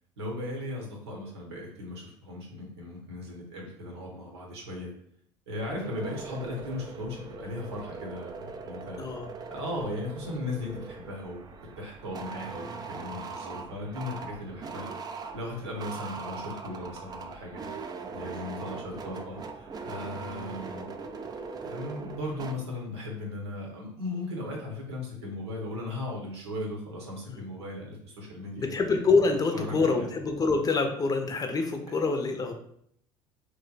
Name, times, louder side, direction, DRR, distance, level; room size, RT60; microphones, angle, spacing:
voice 1, 0.2-4.9 5.5-9.0 9.5-11.5 11.8-14.9 15.3-17.7 18.1-20.9 21.6-28.7 29.5-30.1 31.9-32.0, left 1 dB, 80° right, -1 dB, 1.0 m, -37 dB
sound 1, 5.6-22.5, right 4 dB, 30° right, 0.4 m, -41 dB
voice 2, 28.6-32.5, left 4 dB, 25° left, 5 dB, 0.6 m, -26 dB
3.1 x 2.2 x 3.9 m, 0.68 s
hypercardioid pair, 65°, 14 cm